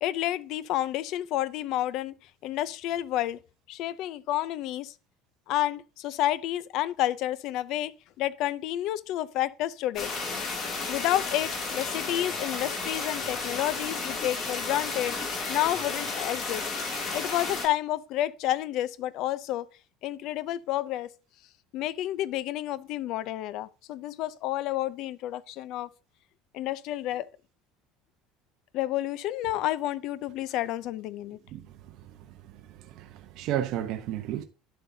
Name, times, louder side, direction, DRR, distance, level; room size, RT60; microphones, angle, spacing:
voice 1, 0.0-2.1 2.4-3.4 3.7-4.9 5.5-7.9 8.2-10.1 10.9-15.2 15.5-16.6 17.1-19.7 20.0-21.1 21.7-25.9 26.5-27.3 28.7-31.4, left 13 dB, 60° left, 0.5 m, -30 dB
sound 1, 9.9-17.7, left 4 dB, 40° left, 2.6 m, -33 dB
voice 2, 31.5-32.1 32.4-34.4, right 11 dB, 60° right, 0.8 m, -33 dB
10.5 x 7.7 x 2.7 m
cardioid pair, 135°, 0 cm